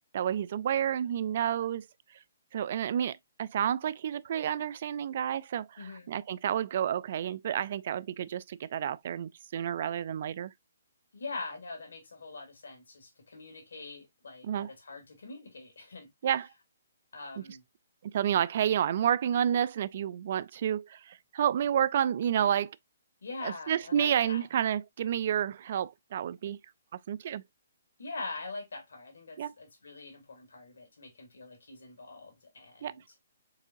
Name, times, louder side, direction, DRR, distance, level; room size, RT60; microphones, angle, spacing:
voice 1, 0.1-1.9 2.5-10.5 14.4-14.7 16.2-16.5 18.0-22.8 23.4-26.6 27.1-27.4 29.4-29.5 32.8-32.9, right 9 dB, 50° right, 0.3 m, -30 dB
voice 2, 5.8-6.1 11.1-16.1 17.1-17.6 23.2-24.5 28.0-33.0, left 3 dB, 75° left, 2.1 m, -43 dB
4.7 x 3.8 x 2.5 m
hypercardioid pair, 145°, 0 cm